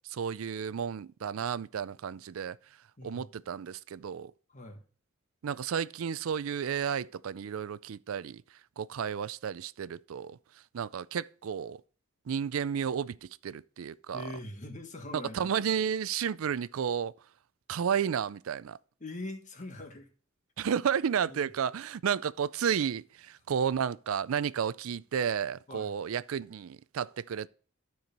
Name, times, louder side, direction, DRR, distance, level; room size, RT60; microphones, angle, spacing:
voice 1, 0.1-2.6 3.0-4.3 5.4-8.4 8.8-10.4 10.7-11.8 12.3-14.3 15.1-17.1 17.7-18.8 20.6-27.5, right 7 dB, 80° right, 0.4 m, -32 dB
voice 2, 3.0-3.3 4.5-4.8 14.1-15.5 19.0-20.1 21.3-21.5 25.7-26.0, left 2 dB, 35° left, 1.5 m, -42 dB
13.0 x 4.7 x 5.3 m
head